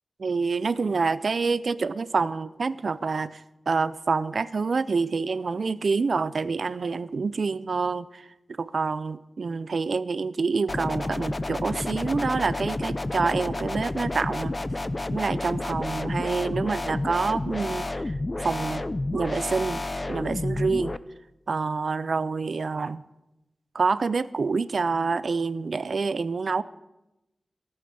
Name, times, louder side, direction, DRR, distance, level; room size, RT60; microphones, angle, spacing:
voice 1, 0.2-14.5 15.1-18.8 19.1-21.0 21.5-23.0 23.7-26.6, right 4 dB, 65° right, 17 dB, 0.4 m, -27 dB
sound 1, 10.7-21.0, left 2 dB, 25° left, 0.4 m, -30 dB
14.5 x 8.7 x 8.1 m, 0.94 s
wide cardioid pair, 120°, 0 cm